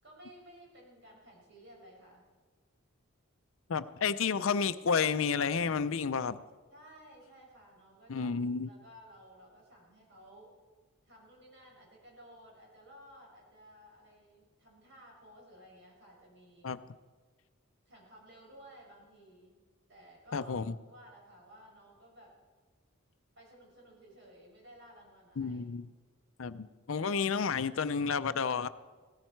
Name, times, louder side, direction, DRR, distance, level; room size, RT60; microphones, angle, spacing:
voice 1, 0.0-2.2 6.7-10.5 11.0-16.8 17.8-19.6 19.9-22.4 23.3-25.6, equal, 55° right, -2 dB, 6.0 m, -56 dB
voice 2, 3.7-6.4 8.1-8.7 16.6-16.8 20.3-20.7 25.4-25.9 26.4-28.7, left 5 dB, 65° left, 13 dB, 0.5 m, -31 dB
17.5 x 15.0 x 4.6 m, 1.4 s
head